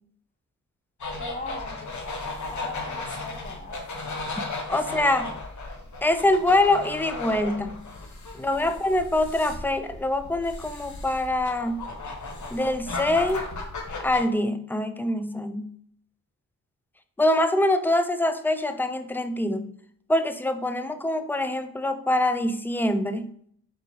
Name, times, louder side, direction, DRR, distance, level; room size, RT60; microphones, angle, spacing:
sound 1, 1.0-14.2, left 3 dB, 55° left, 0.9 m, -35 dB
voice 1, 1.2-2.0 2.5-3.9 4.2-4.4 4.8-4.9 8.4-8.8, left 2 dB, 25° left, 4 dB, 0.9 m, -40 dB
voice 2, 4.7-5.3 6.0-7.8 8.4-11.8 12.5-13.5 14.0-15.7 17.2-19.7 20.1-23.3, left 1 dB, 5° left, 9 dB, 0.4 m, -24 dB
4.3 x 3.4 x 2.7 m, 0.64 s
supercardioid pair, 45°, 34 cm